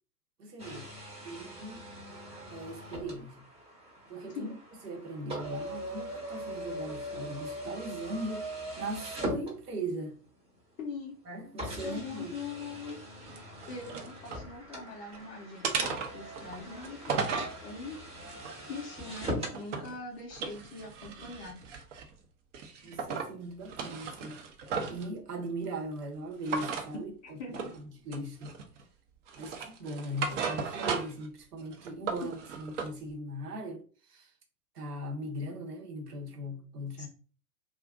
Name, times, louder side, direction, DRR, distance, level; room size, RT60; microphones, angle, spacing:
voice 1, 0.4-0.9 1.2-1.8 2.5-3.4 4.1-4.5 4.8-8.5 8.8-10.2 11.3-12.3 22.8-24.4 24.9-27.1 27.5-28.5 29.4-33.8 34.1-34.3 34.7-37.1, right 1 dB, 75° right, 1.0 m, -39 dB
sound 1, 0.6-10.1 10.8-10.9 11.6-19.6, equal, 15° right, 0.8 m, -41 dB
voice 2, 10.8-11.1 11.8-13.0 13.7-18.0 18.7-21.6 27.4-27.7 37.0-37.1, left 4 dB, 20° left, 0.4 m, -42 dB
sound 2, 13.3-14.4 14.9-15.2 15.6-17.6 18.2-20.0 20.3-22.1 22.5-23.3 23.6-25.1 26.4-26.9 27.5-27.8 28.1-28.8 29.3-31.3 31.6-32.9, right 5 dB, 50° right, 0.7 m, -36 dB
2.4 x 2.1 x 3.6 m
figure-of-eight pair, 100°, 47 cm